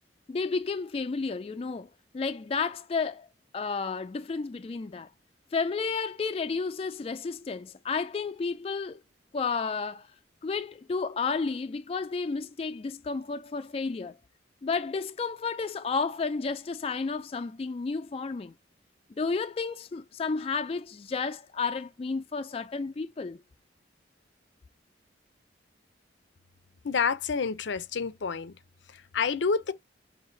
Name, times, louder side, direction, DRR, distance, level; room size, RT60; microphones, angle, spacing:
voice 1, 0.3-1.9 2.1-3.3 3.5-5.1 5.5-9.0 9.3-10.0 10.4-14.1 14.6-18.5 19.1-23.4, left 4 dB, 30° left, 0.3 m, -32 dB
voice 2, 26.8-28.5 28.9-29.7, left 5 dB, 80° left, 0.5 m, -28 dB
6.2 x 2.8 x 2.6 m
head